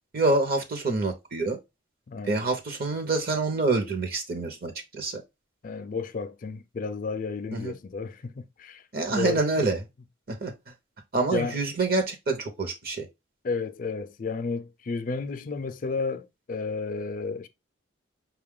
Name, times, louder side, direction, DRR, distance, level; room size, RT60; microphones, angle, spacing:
voice 1, 0.1-1.6 2.3-5.2 7.5-7.7 8.9-9.8 10.3-10.5 11.1-13.1, right 3 dB, 45° right, 0.7 m, -26 dB
voice 2, 2.1-2.4 5.6-8.8 9.1-9.4 11.3-11.6 13.4-17.5, left 4 dB, 40° left, 0.4 m, -32 dB
5.3 x 2.3 x 3.6 m
head